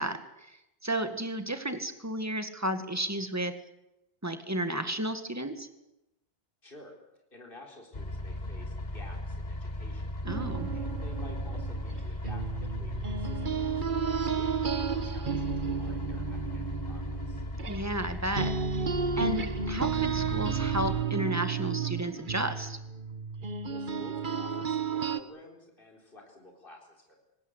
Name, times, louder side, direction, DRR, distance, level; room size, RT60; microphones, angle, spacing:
voice 1, 0.0-3.5 4.2-5.7 10.2-10.7 17.7-18.5 19.2-22.8, right 1 dB, 15° right, 9 dB, 2.1 m, -33 dB
voice 2, 6.6-6.9 7.3-17.4 23.7-27.2, left 2 dB, 60° left, 1 dB, 4.4 m, -52 dB
sound 1, 7.9-21.0, left 1 dB, 45° left, 1.8 m, -37 dB
sound 2, 10.3-18.1 18.3-25.2, right 6 dB, 55° right, 1.4 m, -32 dB
27.0 x 18.5 x 8.3 m, 0.90 s
omnidirectional pair, 1.0 m